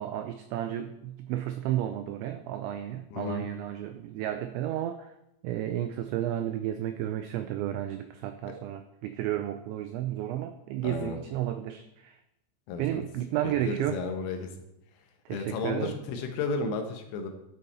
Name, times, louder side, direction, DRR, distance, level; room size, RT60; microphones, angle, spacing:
voice 1, 0.0-5.1 5.4-12.2 12.8-14.0 15.3-16.0, right 12 dB, 90° right, 8 dB, 2.6 m, -32 dB
voice 2, 3.1-3.5 10.8-11.2 12.7-13.0 13.4-14.5 15.3-17.3, left 4 dB, 75° left, 4 dB, 3.6 m, -33 dB
13.0 x 7.7 x 4.3 m, 0.87 s
omnidirectional pair, 5.9 m